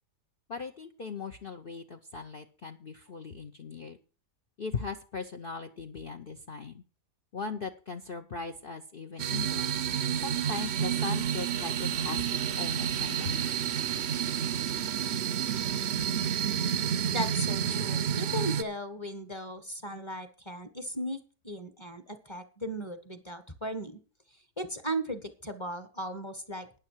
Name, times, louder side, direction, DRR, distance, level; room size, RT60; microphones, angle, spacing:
voice 1, 0.5-4.0 4.6-6.8 7.3-9.8 10.2-13.4, left 4 dB, 45° left, 10 dB, 0.8 m, -39 dB
sound 1, 9.2-18.6, right 8 dB, 55° right, 0.8 m, -30 dB
voice 2, 17.1-21.2 21.4-24.0 24.6-26.7, equal, 20° left, 10 dB, 1.2 m, -37 dB
12.0 x 9.7 x 4.6 m, 0.37 s
omnidirectional pair, 1.8 m